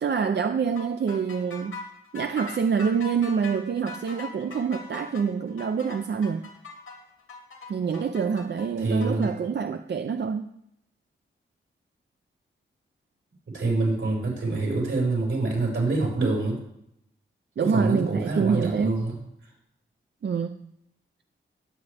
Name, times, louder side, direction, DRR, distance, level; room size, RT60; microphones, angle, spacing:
voice 1, 0.0-1.8 2.1-6.5 7.7-10.5 17.6-19.0 20.2-20.7, right 6 dB, 55° right, 0.5 m, -26 dB
sound 1, 0.8-9.3, left 3 dB, 85° left, 2.9 m, -41 dB
voice 2, 8.8-9.3 13.5-16.6 17.6-19.5, right 2 dB, 85° right, 5.2 m, -26 dB
19.0 x 8.3 x 3.4 m
wide cardioid pair, 120°, 21 cm